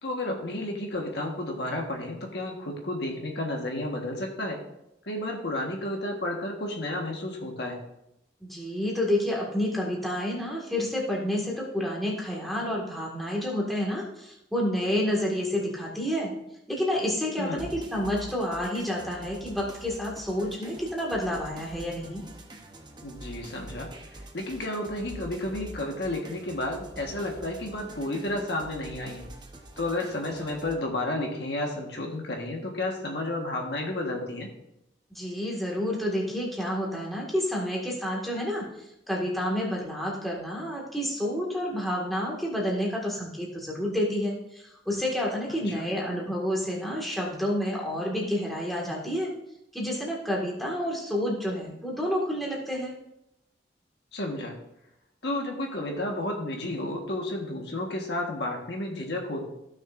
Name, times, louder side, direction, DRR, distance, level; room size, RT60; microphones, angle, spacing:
voice 1, 0.0-4.6 5.1-7.8 17.4-17.6 23.0-23.9 24.3-29.2 29.8-34.5 45.5-45.8 54.1-54.5 55.2-59.4, left 1 dB, 65° left, 1 dB, 1.4 m, -32 dB
voice 2, 8.4-16.3 16.7-22.2 35.1-38.6 39.1-49.3 49.7-52.9, equal, ahead, -4 dB, 1.8 m, -29 dB
sound 1, 17.6-30.7, right 1 dB, 25° right, 0.8 m, -45 dB
15.0 x 6.3 x 2.5 m, 0.85 s
head